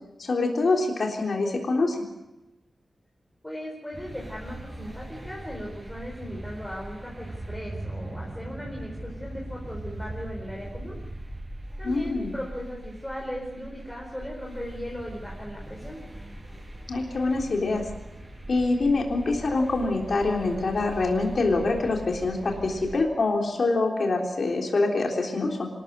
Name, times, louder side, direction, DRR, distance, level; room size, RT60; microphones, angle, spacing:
voice 1, 0.2-2.1 11.8-12.3 16.9-17.9 18.5-25.7, left 3 dB, 60° left, 1 dB, 3.6 m, -25 dB
voice 2, 3.4-11.0 11.8-16.0, equal, 10° left, -2 dB, 4.5 m, -38 dB
sound 1, 3.9-23.0, right 1 dB, 20° right, 6.5 m, -40 dB
26.0 x 14.0 x 8.2 m, 0.98 s
wide cardioid pair, 120°, 0 cm